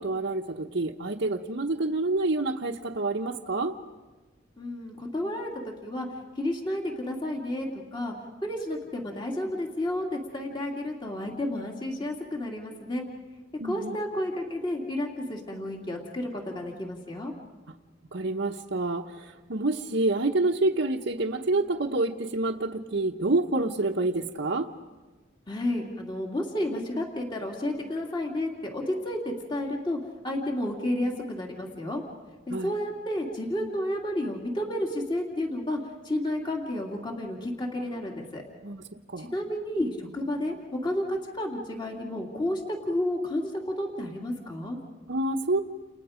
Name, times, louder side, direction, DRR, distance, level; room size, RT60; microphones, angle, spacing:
voice 1, 0.0-3.7 13.6-14.0 18.1-24.7 32.5-32.7 38.6-38.8 39.1-39.3 45.1-45.6, right 2 dB, 70° right, -1 dB, 1.1 m, -27 dB
voice 2, 4.6-6.1 6.4-8.1 8.4-13.1 13.6-17.3 25.5-30.0 30.2-32.0 32.5-35.8 36.0-38.4 39.2-40.5 40.8-44.8, left 1 dB, 25° left, 0 dB, 2.6 m, -31 dB
30.0 x 29.5 x 5.1 m, 1.3 s
head